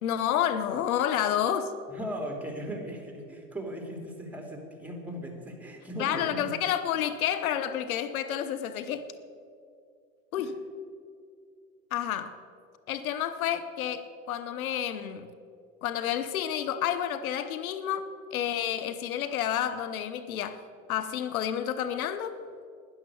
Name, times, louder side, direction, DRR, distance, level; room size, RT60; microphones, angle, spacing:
voice 1, 0.0-1.7 6.0-9.0 10.3-10.5 11.9-12.4 12.9-15.3 15.8-20.6 20.9-22.4, left 10 dB, 85° left, 11 dB, 0.8 m, -30 dB
voice 2, 1.9-6.5 6.9-7.0 10.4-10.6, equal, 5° right, 2 dB, 2.8 m, -38 dB
12.0 x 10.0 x 7.0 m, 2.3 s
hypercardioid pair, 90°, 41 cm